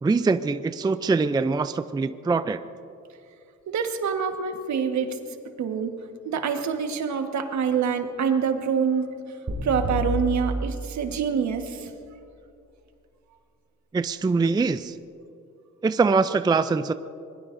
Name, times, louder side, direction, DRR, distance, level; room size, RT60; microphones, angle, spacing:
voice 1, 0.0-2.6 13.9-14.9 15.8-16.9, right 4 dB, 15° right, 11 dB, 0.4 m, -23 dB
voice 2, 3.7-5.2 5.6-5.9 6.2-9.2 9.6-11.9, right 6 dB, 65° right, 6 dB, 1.5 m, -26 dB
sound 1, 9.5-11.6, left 1 dB, 40° right, 4.4 m, -30 dB
25.5 x 21.0 x 2.7 m, 2.6 s
cardioid pair, 90°, 30 cm